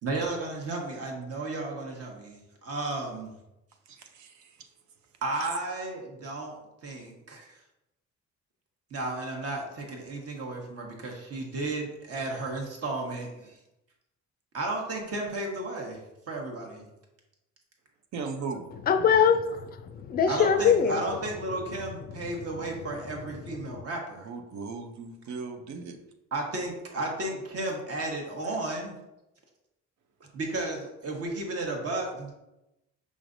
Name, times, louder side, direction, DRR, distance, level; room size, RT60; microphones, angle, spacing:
voice 1, 0.0-3.4 5.2-6.5 6.8-7.6 8.9-13.6 14.5-16.0 16.3-16.9 20.3-24.3 26.3-28.9 30.3-32.3, right 2 dB, 50° right, 1.1 m, -33 dB
voice 2, 3.9-4.7 5.3-5.5 18.1-18.7 24.2-26.0, right 4 dB, 70° right, 0.6 m, -38 dB
voice 3, 18.9-21.0 22.9-23.0 23.6-23.8, left 7 dB, 30° left, 0.4 m, -23 dB
5.0 x 3.2 x 2.5 m
cardioid pair, 90°, 30 cm